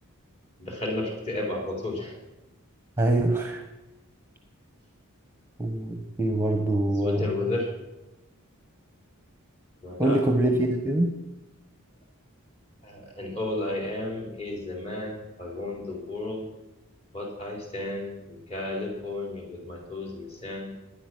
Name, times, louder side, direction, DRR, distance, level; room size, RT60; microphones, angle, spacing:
voice 1, 0.6-2.2 7.0-7.7 9.8-10.2 12.8-16.5 17.1-20.7, left 2 dB, 30° left, 0 dB, 3.9 m, -33 dB
voice 2, 3.0-3.6 5.6-7.3 10.0-11.1, right 1 dB, 10° right, 4 dB, 1.1 m, -24 dB
16.5 x 10.5 x 6.1 m, 0.97 s
head